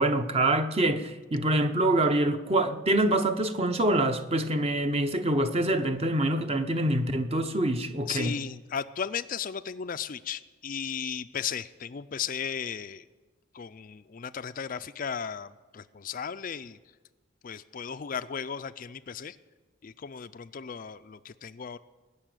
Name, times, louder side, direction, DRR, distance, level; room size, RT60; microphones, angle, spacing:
voice 1, 0.0-8.3, right 1 dB, 30° right, 0.8 m, -25 dB
voice 2, 8.1-13.1 13.5-16.8 17.4-19.4 19.8-21.8, left 7 dB, 40° left, 0.4 m, -35 dB
20.5 x 6.9 x 9.1 m
head